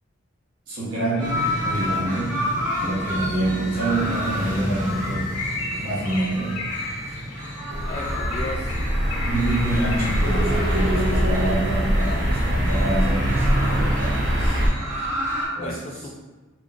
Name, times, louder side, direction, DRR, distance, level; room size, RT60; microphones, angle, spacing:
voice 1, 0.7-2.5 2.8-5.4 5.8-6.6 9.2-14.6 15.5-15.8, right 1 dB, 90° right, -9 dB, 1.0 m, -27 dB
sound 1, 1.2-15.5, equal, 40° right, 0.9 m, -30 dB
voice 2, 1.7-2.1 7.9-8.8 15.4-16.1, left 1 dB, 35° left, 1 dB, 0.3 m, -35 dB
Bird, 4.9-11.2, left 2 dB, 90° left, 0.5 m, -35 dB
sound 2, 7.7-14.7, equal, 60° right, 0.5 m, -23 dB
3.0 x 2.7 x 2.4 m, 1.2 s
head